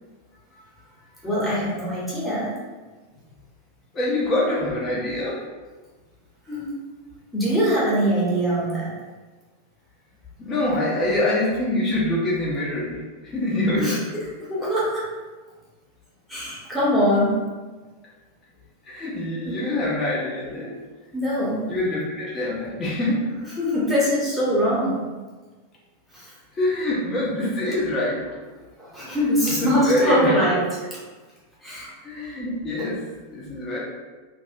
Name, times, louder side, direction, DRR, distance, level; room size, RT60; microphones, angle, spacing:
voice 1, 1.2-2.5 6.5-6.6 7.3-8.9 13.8-14.0 14.5-15.0 16.3-17.5 19.4-19.6 21.1-21.7 23.6-25.1 26.1-26.3 28.8-30.6 31.6-31.9, equal, 5° left, -9 dB, 1.0 m, -22 dB
voice 2, 3.9-5.4 10.4-14.1 18.8-20.7 21.6-23.3 26.5-28.2 29.0-29.2 29.6-30.5 32.0-33.8, left 1 dB, 25° left, -6 dB, 0.7 m, -25 dB
2.5 x 2.1 x 2.5 m, 1.3 s
figure-of-eight pair, 90°, 0 cm